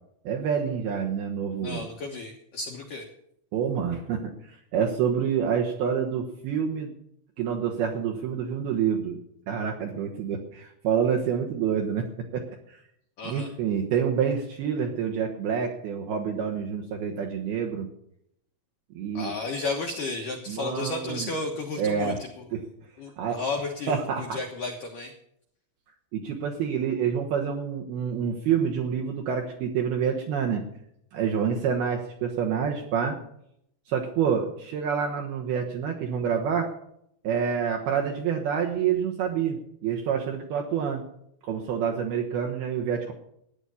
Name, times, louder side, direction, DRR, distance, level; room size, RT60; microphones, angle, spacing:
voice 1, 0.2-1.9 3.5-6.9 7.4-9.2 9.5-12.1 12.3-12.8 13.2-17.9 18.9-19.3 20.5-21.3 21.8-22.2 22.5-22.6 23.2-23.4 23.9-24.4 26.1-30.6 31.1-33.2 33.9-36.7 37.2-41.0 41.4-43.1, right 7 dB, 70° right, 1 dB, 2.4 m, -27 dB
voice 2, 1.6-3.1 13.2-13.5 19.1-22.1 23.0-25.1, left 3 dB, 75° left, 2 dB, 2.0 m, -33 dB
14.0 x 9.9 x 7.0 m, 0.74 s
omnidirectional pair, 6.0 m